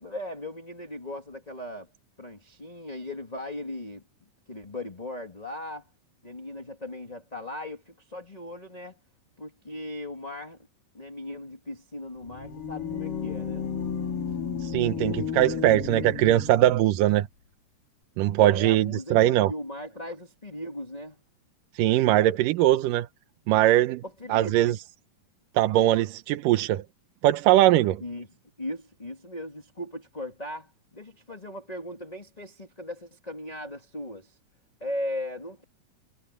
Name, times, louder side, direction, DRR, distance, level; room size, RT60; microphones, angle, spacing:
voice 1, 0.0-1.9 2.2-4.0 4.5-5.9 6.2-9.0 9.4-10.7 10.9-13.7 18.4-21.2 24.0-24.8 28.0-28.3 28.6-34.4 34.8-35.6, left 1 dB, 15° left, 2.4 m, -38 dB
sound 1, 12.2-17.0, left 6 dB, 85° left, 5.5 m, -33 dB
voice 2, 14.6-17.3 18.2-19.5 21.8-23.1 23.5-24.0 24.3-24.8 25.6-26.8 27.2-28.0, right 14 dB, 90° right, 2.4 m, -21 dB
omnidirectional pair, 3.8 m